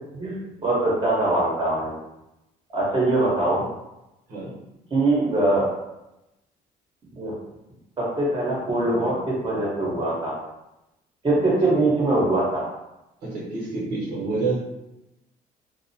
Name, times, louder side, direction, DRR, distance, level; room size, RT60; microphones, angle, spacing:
voice 1, 0.1-1.9 2.7-3.7 4.9-5.7 7.1-7.3 8.0-10.4 11.2-12.6, right 2 dB, 30° right, -6 dB, 1.2 m, -22 dB
voice 2, 13.2-14.6, right 3 dB, 65° right, -5 dB, 1.0 m, -28 dB
2.5 x 2.1 x 2.7 m, 0.93 s
cardioid pair, 110°, 17 cm